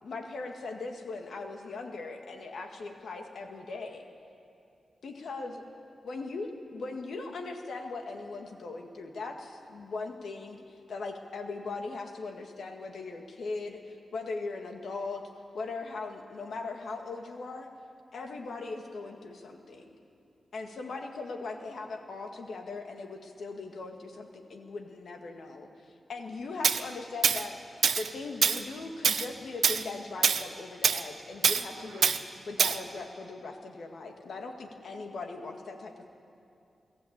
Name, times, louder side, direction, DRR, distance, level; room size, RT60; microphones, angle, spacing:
voice 1, 0.0-4.0 5.0-5.6 6.0-15.2 15.5-17.7 18.1-20.0 20.5-25.7 26.1-27.6 28.0-36.1, left 3 dB, 75° left, 4 dB, 1.9 m, -39 dB
Tools, 26.6-26.8 27.2-27.4 27.8-28.1 28.4-28.6 29.0-29.3 29.6-29.8 30.2-30.4 30.8-31.0 31.4-31.6 32.0-32.2 32.6-32.8, right 6 dB, 75° right, 0.7 m, -24 dB
22.5 x 14.5 x 8.7 m, 2.6 s
cardioid pair, 85°, 0 cm